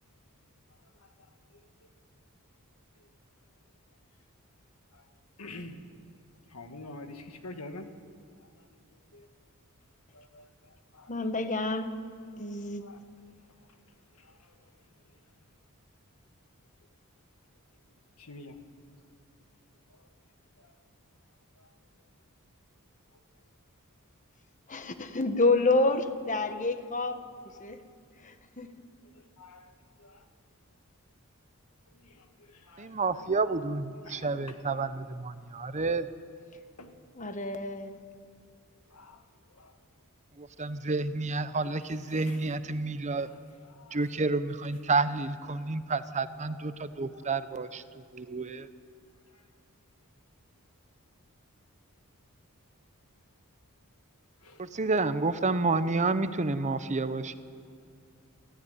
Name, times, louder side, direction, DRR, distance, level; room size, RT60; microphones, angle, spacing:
voice 1, 5.4-5.8 6.5-7.9 9.1-9.3 10.1-10.3 10.9-11.1 12.8-13.0 18.2-18.6 21.6-21.7 29.1-29.7 30.0-30.2 32.0-32.9 34.1-34.6 36.8-36.9 38.9-39.2 39.6-39.7 42.3-42.4 43.8-44.0 54.4-54.6, left 2 dB, 80° left, 6 dB, 1.9 m, -46 dB
voice 2, 11.1-12.0 12.4-12.9 24.7-27.2 27.6-27.8 28.2-28.8 37.1-38.0, left 2 dB, 35° left, 9 dB, 1.3 m, -28 dB
voice 3, 32.8-36.1 40.4-43.3 43.9-47.8 48.1-48.7 54.6-57.4, right 3 dB, 35° right, 12 dB, 0.8 m, -30 dB
26.5 x 14.0 x 9.4 m, 2.2 s
head